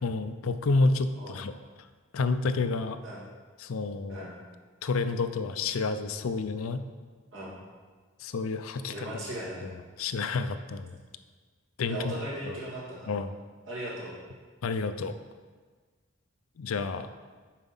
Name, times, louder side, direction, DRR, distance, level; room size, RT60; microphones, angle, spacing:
voice 1, 0.0-1.5 2.1-3.0 3.6-4.2 4.8-6.8 8.2-9.1 9.6-11.0 11.8-12.2 12.4-12.6 13.1-13.3 14.6-15.1 16.6-17.1, left 3 dB, 85° left, 10 dB, 0.5 m, -29 dB
voice 2, 8.9-9.6 11.9-13.1 13.6-14.1, right 1 dB, 65° right, -6 dB, 2.5 m, -37 dB
7.3 x 5.0 x 5.5 m, 1.5 s
head